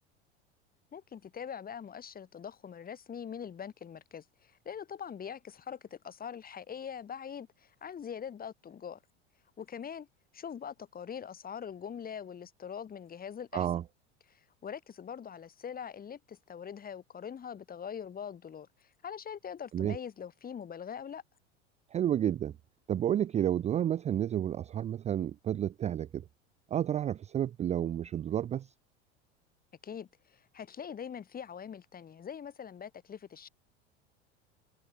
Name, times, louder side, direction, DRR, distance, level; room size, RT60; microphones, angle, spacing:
voice 1, 0.9-9.0 9.6-10.1 10.3-13.7 14.3-21.2 29.8-33.5, left 8 dB, 25° left, 2.6 m, -43 dB
voice 2, 21.9-22.5 22.9-26.2 26.7-28.7, right 10 dB, 20° right, 0.4 m, -30 dB
hypercardioid pair, 80°, 33 cm